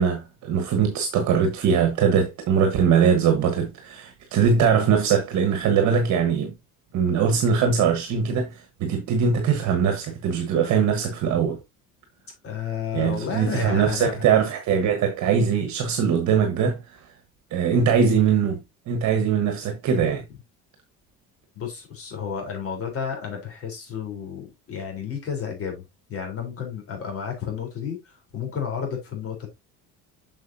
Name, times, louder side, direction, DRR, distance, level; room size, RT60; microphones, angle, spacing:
voice 1, 0.0-6.5 6.9-11.6 12.9-17.0 17.5-20.2, right 6 dB, 60° right, 1.4 m, -21 dB
voice 2, 12.4-14.5 21.5-25.8 26.1-29.5, left 7 dB, 45° left, 3.8 m, -32 dB
7.6 x 6.2 x 2.7 m
cardioid pair, 130°, 32 cm